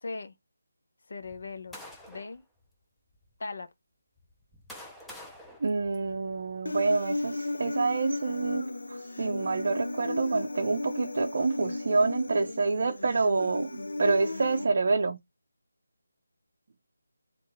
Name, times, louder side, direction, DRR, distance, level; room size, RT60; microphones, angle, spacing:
voice 1, 0.0-0.4 1.1-2.4 3.4-3.7, left 3 dB, 60° left, 0.9 m, -39 dB
sound 1, 1.2-2.4 3.1-3.3 4.2-6.5, left 1 dB, ahead, 0.5 m, -48 dB
voice 2, 5.6-15.2, right 3 dB, 50° right, 0.5 m, -27 dB
Human voice, 6.7-14.6, left 2 dB, 80° left, 0.5 m, -35 dB
3.6 x 2.5 x 3.2 m
figure-of-eight pair, 165°, 0 cm